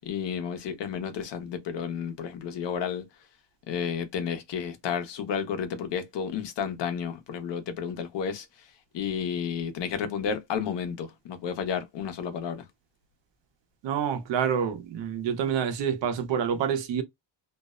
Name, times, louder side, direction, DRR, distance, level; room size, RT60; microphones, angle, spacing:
voice 1, 0.0-3.0 3.7-8.5 8.9-12.7, left 7 dB, 75° left, 0.8 m, -31 dB
voice 2, 13.8-17.0, right 8 dB, 80° right, 0.8 m, -27 dB
2.5 x 2.0 x 2.3 m
cardioid pair, 130°, 43 cm